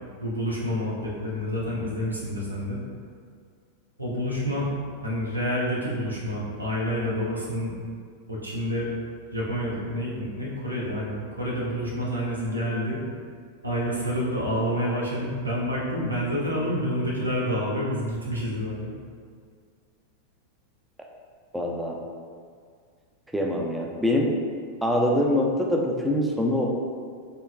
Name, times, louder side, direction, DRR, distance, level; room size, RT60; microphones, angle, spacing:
voice 1, 0.2-2.8 4.0-4.7 5.0-7.7 8.3-8.9 9.3-13.0 13.6-18.9, equal, 85° right, -5 dB, 1.0 m, -28 dB
voice 2, 21.5-22.0 23.3-24.3 24.8-26.7, left 1 dB, 5° right, -1 dB, 0.6 m, -24 dB
5.5 x 3.9 x 2.5 m, 2.1 s
figure-of-eight pair, 90°, 0 cm